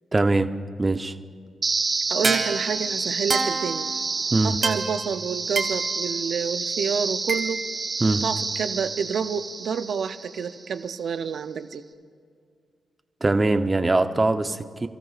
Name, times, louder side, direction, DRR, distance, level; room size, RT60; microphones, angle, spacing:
voice 1, 0.1-0.5 0.8-1.1 4.3-4.6 8.0-8.2 13.2-14.9, right 2 dB, 25° right, 9 dB, 0.8 m, -22 dB
sound 1, 1.6-10.6, right 4 dB, 45° right, 1.7 m, -27 dB
voice 2, 2.1-3.9 4.4-7.6 8.2-11.8, right 6 dB, 65° right, 11 dB, 0.6 m, -28 dB
29.5 x 14.0 x 2.5 m, 2.1 s
cardioid pair, 60°, 0 cm